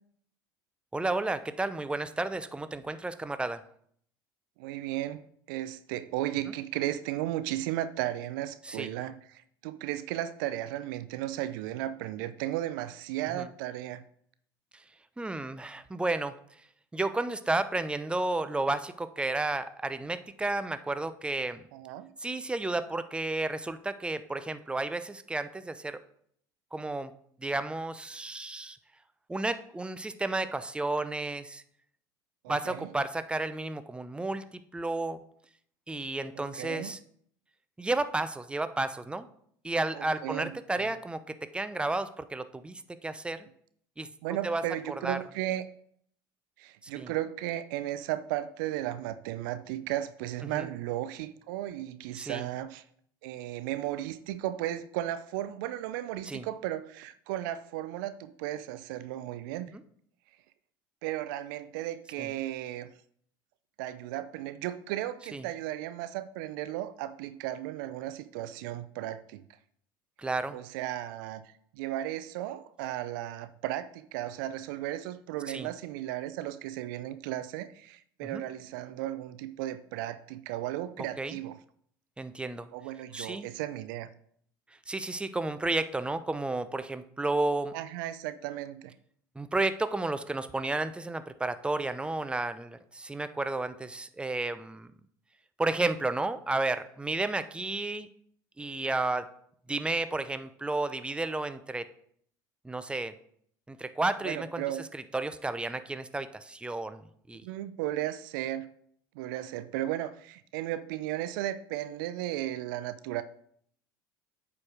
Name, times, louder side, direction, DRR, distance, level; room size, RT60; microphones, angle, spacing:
voice 1, 0.9-3.6 8.6-8.9 13.3-13.5 15.2-16.4 16.9-21.6 22.2-26.0 26.7-27.1 27.4-28.8 29.3-31.6 32.5-35.2 35.9-37.0 37.8-39.3 39.6-43.5 44.0-44.1 44.4-44.6 45.0-45.2 46.9-47.1 50.4-50.7 52.2-52.5 56.3-56.5 59.7-59.8 62.2-62.3 65.3-65.4 70.2-70.6 75.5-75.7 78.2-78.4 81.0-81.4 82.2-82.7 83.1-83.5 84.9-87.7 89.4-94.9 95.6-98.1 98.6-99.3 99.7-101.9 102.6-103.1 103.7-107.5, right 2 dB, 10° right, 12 dB, 0.6 m, -32 dB
voice 2, 4.6-5.2 5.5-14.0 21.7-22.1 32.4-32.9 36.4-36.9 39.9-40.9 44.2-45.7 46.6-52.8 53.2-59.7 61.0-62.9 63.8-69.4 70.5-71.4 71.7-81.6 82.7-84.1 87.7-88.9 104.2-104.8 107.4-108.7 109.2-113.2, right 13 dB, 70° right, 13 dB, 0.5 m, -35 dB
8.4 x 4.8 x 5.0 m, 0.64 s
hypercardioid pair, 70°, 11 cm